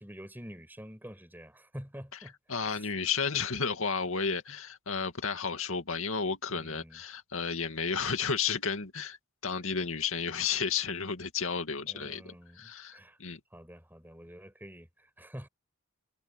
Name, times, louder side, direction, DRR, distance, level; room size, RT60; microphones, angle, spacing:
voice 1, 0.0-2.3 2.7-2.9 6.5-7.0 11.7-13.2 13.5-15.5, equal, 10° right, 5.3 m, -47 dB
voice 2, 2.5-9.2 9.4-13.4, left 5 dB, 70° left, 2.3 m, -32 dB
head